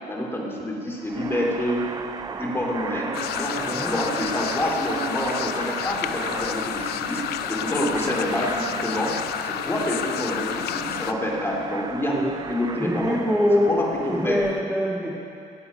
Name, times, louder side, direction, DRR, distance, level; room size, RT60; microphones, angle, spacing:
voice 1, 0.1-1.9 2.4-7.2 7.5-9.2 9.4-12.2 12.5-13.2 13.7-14.4, left 1 dB, 15° left, -2 dB, 2.4 m, -27 dB
sound 1, 1.0-14.6, right 5 dB, 25° right, 0.4 m, -36 dB
sound 2, 3.1-11.1, left 12 dB, 70° left, 0.4 m, -30 dB
voice 2, 12.8-13.7 14.1-15.1, left 1 dB, 5° right, -6 dB, 1.5 m, -23 dB
18.5 x 7.0 x 5.3 m, 2.6 s
cardioid pair, 110°, 17 cm